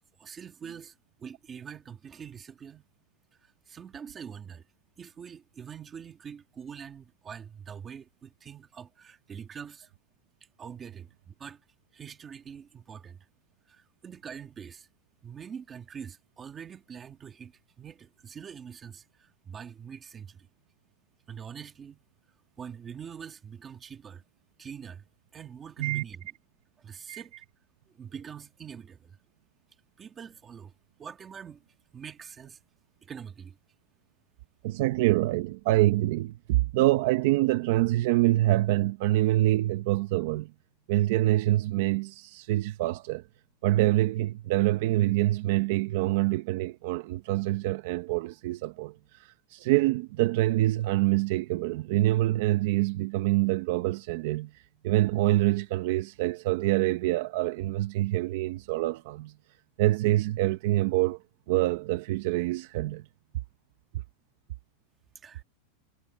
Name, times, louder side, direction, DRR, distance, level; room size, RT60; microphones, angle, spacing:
voice 1, 0.2-2.8 3.4-4.6 5.0-9.9 10.6-11.6 11.9-13.2 13.7-14.9 15.2-20.5 21.3-22.0 22.6-24.2 24.6-25.0 25.3-26.3 26.8-27.3 27.9-29.2 30.0-30.7 31.0-31.6 31.9-32.6 33.0-33.6 65.2-65.4, right 7 dB, 15° right, 1.6 m, -44 dB
voice 2, 34.6-40.5 40.9-43.2 43.6-54.5 54.8-59.3 59.8-61.2 61.5-63.0, right 16 dB, 50° right, 0.7 m, -26 dB
supercardioid pair, 180°, 0 cm